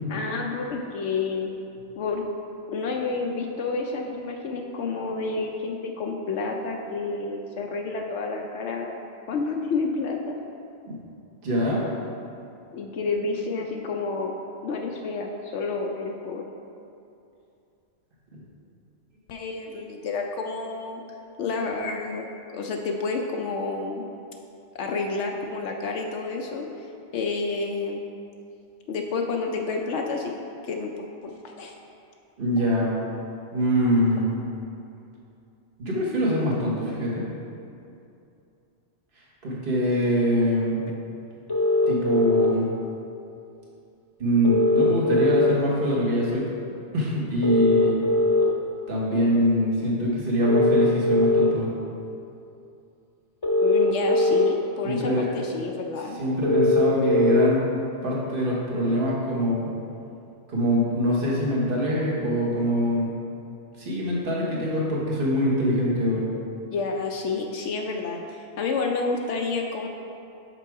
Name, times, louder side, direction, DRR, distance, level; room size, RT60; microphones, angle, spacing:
voice 1, 0.1-1.5 2.0-2.2 2.7-9.0 9.3-10.4 12.7-14.3 14.6-16.5 19.3-21.0 21.4-24.0 24.7-26.9 27.1-28.0 28.9-30.3 30.6-30.9 31.4-31.8 53.6-56.2 66.7-69.9, left 4 dB, 75° left, 2 dB, 0.9 m, -29 dB
voice 2, 11.4-11.8 32.4-32.9 33.5-34.3 35.8-37.2 39.4-40.8 41.9-42.7 44.2-46.5 46.9-47.9 48.9-51.7 54.8-55.3 56.2-57.7 58.0-59.7 60.5-63.1 63.8-66.2, equal, 50° right, -5 dB, 1.5 m, -23 dB
sound 1, 41.5-42.5 44.4-45.5 47.4-48.4 50.4-51.4 53.4-54.4 56.4-57.4, left 2 dB, 20° left, 0.9 m, -21 dB
6.0 x 5.9 x 4.6 m, 2.6 s
omnidirectional pair, 1.2 m